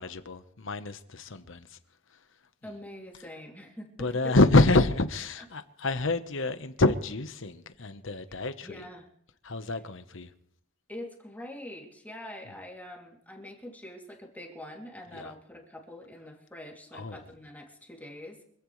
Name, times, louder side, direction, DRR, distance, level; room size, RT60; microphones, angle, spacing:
voice 1, 0.0-1.7 4.0-8.8 9.4-10.3 15.1-15.3 16.9-17.2, left 2 dB, 70° left, 1.2 m, -27 dB
voice 2, 2.6-4.4 8.6-9.1 10.9-18.4, left 1 dB, 10° left, 3.0 m, -44 dB
25.5 x 15.5 x 3.3 m
head